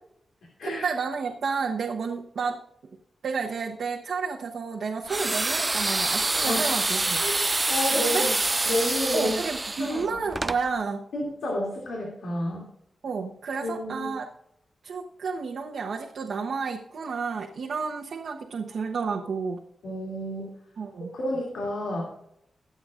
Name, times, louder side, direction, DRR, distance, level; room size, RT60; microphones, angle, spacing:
voice 1, 0.6-2.6 3.2-7.2 7.9-8.3 9.1-11.0 13.0-14.3 14.8-19.7 20.8-21.2, right 5 dB, 75° right, 0 dB, 1.1 m, -31 dB
sound 1, 5.1-10.6, right 2 dB, 25° right, 0.3 m, -26 dB
voice 2, 7.1-7.4 7.7-8.3 8.6-9.4 9.8-10.3 11.1-12.6 13.6-14.1 19.8-20.5 21.1-22.1, left 1 dB, 85° left, -2 dB, 2.7 m, -30 dB
22.0 x 7.9 x 2.5 m, 0.76 s
wide cardioid pair, 95°, 0 cm